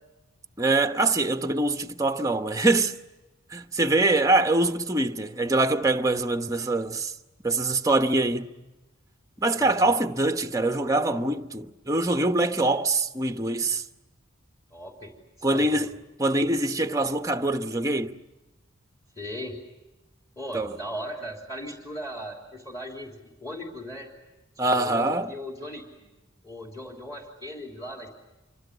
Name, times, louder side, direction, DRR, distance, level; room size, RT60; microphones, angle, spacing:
voice 1, 0.6-2.9 3.5-7.1 7.4-8.5 9.4-13.8 15.4-15.9 16.2-18.2 20.5-20.7 24.6-25.3, right 2 dB, 15° right, 1.1 m, -24 dB
voice 2, 9.5-9.9 14.7-15.8 19.2-19.6 20.4-23.1 23.4-24.1 24.5-26.1 26.4-28.1, equal, 15° left, 3.3 m, -38 dB
27.0 x 24.5 x 8.1 m
head